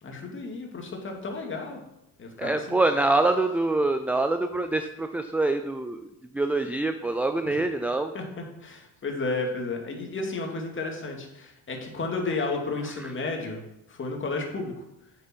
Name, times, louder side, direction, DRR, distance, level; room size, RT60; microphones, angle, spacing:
voice 1, 0.0-1.8 2.2-2.8 7.5-7.6 8.1-13.6 13.9-14.7, left 3 dB, 30° left, 2 dB, 2.3 m, -32 dB
voice 2, 2.4-6.0 6.3-8.1 13.0-13.1, right 2 dB, 5° right, 8 dB, 0.4 m, -25 dB
8.6 x 7.0 x 4.5 m, 0.87 s
supercardioid pair, 90°, 37 cm